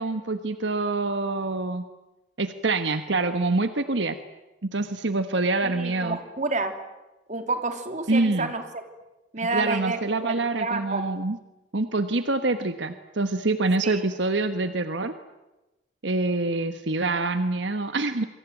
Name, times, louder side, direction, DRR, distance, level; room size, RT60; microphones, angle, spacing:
voice 1, 0.0-1.8 2.4-4.2 4.6-6.2 8.1-8.5 9.5-11.4 11.7-15.1 16.0-18.3, right 2 dB, 75° right, 9 dB, 1.4 m, -26 dB
voice 2, 5.6-6.7 7.3-8.8 9.3-11.1 13.8-14.0, right 3 dB, 40° right, 7 dB, 3.0 m, -29 dB
27.0 x 23.5 x 9.3 m, 1.0 s
head